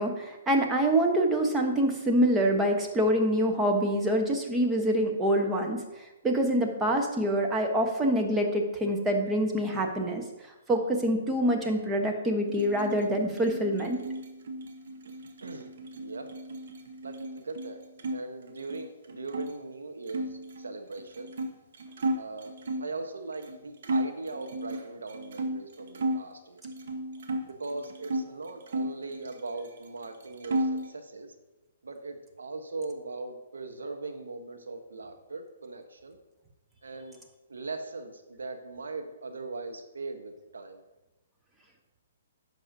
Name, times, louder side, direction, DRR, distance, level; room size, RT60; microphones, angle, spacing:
voice 1, 0.0-5.8 6.2-10.2 10.7-14.0, right 1 dB, 10° right, 2 dB, 1.1 m, -26 dB
sound 1, 12.5-18.2 18.5-19.5 20.1-22.9 23.4-23.5 23.8-26.3 26.6-28.3 28.7-29.8 30.0-30.9, right 1 dB, 65° right, 1.2 m, -34 dB
voice 2, 15.4-15.7 16.0-16.3 17.0-17.8 18.1-21.3 22.2-26.6 27.4-31.3 31.8-36.2 36.8-37.2 37.5-40.8, right 3 dB, 90° right, 6 dB, 1.1 m, -40 dB
10.5 x 6.6 x 2.7 m, 1.0 s
hypercardioid pair, 140°, 0 cm